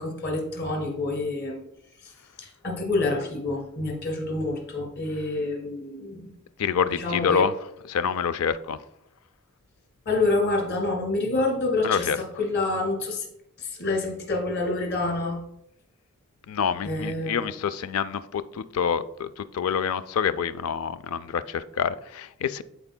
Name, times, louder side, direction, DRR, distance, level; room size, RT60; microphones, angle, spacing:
voice 1, 0.0-1.6 2.0-2.1 2.4-6.3 6.9-7.5 10.1-13.3 13.6-15.4 16.8-17.5, left 2 dB, 50° left, 0 dB, 2.0 m, -27 dB
voice 2, 6.6-7.5 7.9-8.8 11.8-12.2 16.5-22.6, left 7 dB, 80° left, 14 dB, 0.4 m, -27 dB
13.0 x 4.4 x 2.2 m, 0.78 s
head